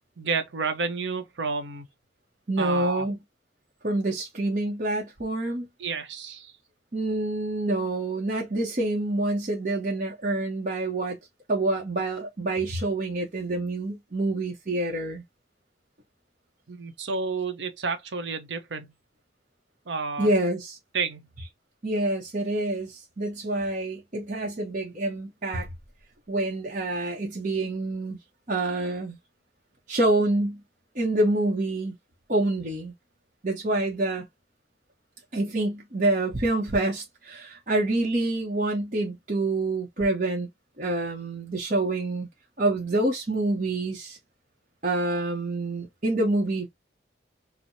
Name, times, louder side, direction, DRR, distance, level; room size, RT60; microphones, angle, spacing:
voice 1, 0.2-1.9 2.6-3.1 5.8-6.5 16.7-18.9 19.9-20.3 20.9-21.3, right 4 dB, 80° right, 0.7 m, -30 dB
voice 2, 2.5-3.2 3.8-5.7 6.9-11.2 11.5-15.2 20.2-20.8 21.8-25.7 26.3-28.2 28.5-29.2 29.9-30.6 30.9-31.9 32.3-32.9 33.4-34.2 35.3-40.5 40.8-42.3 42.6-44.2 44.8-46.7, right 2 dB, 45° right, 0.7 m, -27 dB
4.5 x 2.0 x 2.6 m
head